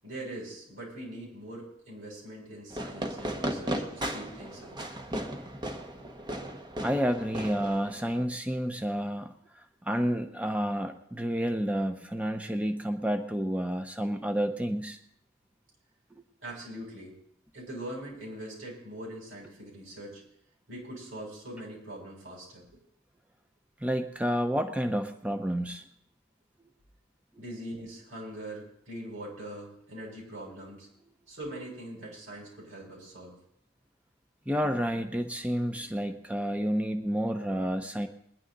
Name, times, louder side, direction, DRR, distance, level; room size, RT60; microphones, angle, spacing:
voice 1, 0.0-4.8 16.4-17.1 17.5-20.2 20.7-22.8 27.4-30.9 31.3-33.4, right 1 dB, 80° right, -3 dB, 7.4 m, -42 dB
Fireworks, 2.7-8.2, right 1 dB, 25° right, 1.1 m, -36 dB
voice 2, 6.8-9.3 9.8-15.0 23.8-25.8 34.5-38.1, equal, 5° right, 6 dB, 0.7 m, -30 dB
21.5 x 10.5 x 3.9 m, 0.71 s
head